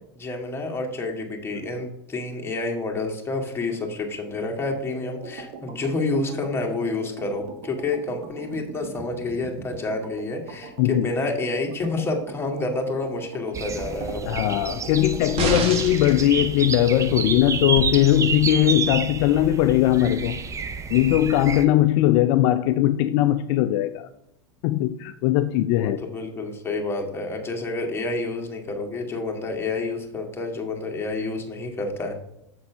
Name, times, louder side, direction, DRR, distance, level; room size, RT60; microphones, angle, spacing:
voice 1, 0.2-14.3 25.7-32.1, left 3 dB, 15° left, 1.6 m, -29 dB
sound 1, 4.9-15.7, right 4 dB, 55° right, 1.2 m, -40 dB
voice 2, 10.8-11.1 14.3-20.4 20.9-24.1 24.6-26.0, left 13 dB, 55° left, 0.4 m, -20 dB
sound 2, 13.5-21.6, right 5 dB, 20° right, 0.6 m, -30 dB
sound 3, 15.4-16.2 17.8-17.9, right 2 dB, 35° right, 1.3 m, -26 dB
7.0 x 4.2 x 5.5 m
hypercardioid pair, 110°, 16 cm